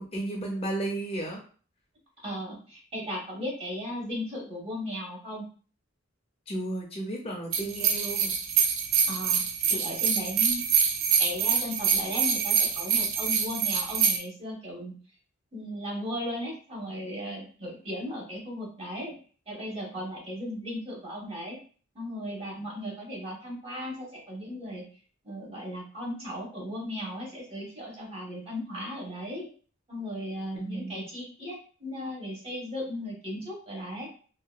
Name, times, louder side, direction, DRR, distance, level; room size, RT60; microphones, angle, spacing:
voice 1, 0.0-1.4 6.5-8.3 30.6-31.1, right 2 dB, 30° left, 0 dB, 0.5 m, -33 dB
voice 2, 2.2-5.5 9.0-9.4 9.7-10.6 11.2-14.9 15.5-19.2 19.5-21.6 21.9-24.8 25.2-29.5 29.9-34.1, left 1 dB, 30° right, -3 dB, 0.9 m, -36 dB
sound 1, 7.5-14.2, right 7 dB, 75° right, 0.4 m, -25 dB
2.7 x 2.2 x 2.2 m, 0.41 s
head